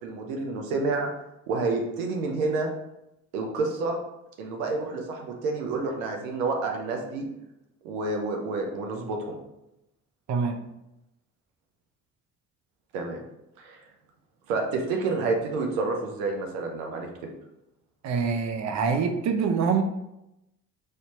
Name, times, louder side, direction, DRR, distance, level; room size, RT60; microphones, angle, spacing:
voice 1, 0.0-1.1 1.5-2.7 3.3-4.0 4.4-7.3 7.8-9.4 12.9-13.2 13.6-13.8 14.5-17.3, right 3 dB, 85° right, 2 dB, 0.7 m, -29 dB
voice 2, 10.3-10.6 18.0-19.8, right 5 dB, 45° right, 6 dB, 0.6 m, -25 dB
4.9 x 2.8 x 3.0 m, 0.87 s
hypercardioid pair, 50°, 40 cm